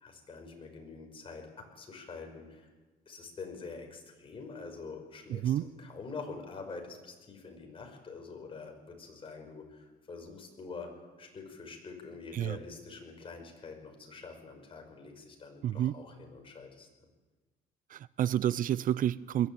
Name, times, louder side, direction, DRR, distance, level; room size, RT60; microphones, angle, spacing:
voice 1, 0.0-2.7 3.1-16.9 18.8-18.9, left 4 dB, 30° left, 3 dB, 5.4 m, -46 dB
voice 2, 5.3-5.6 12.3-12.6 15.6-15.9 17.9-19.5, right 11 dB, 55° right, 19 dB, 0.5 m, -29 dB
21.5 x 14.0 x 8.8 m, 1.2 s
cardioid pair, 110°, 17 cm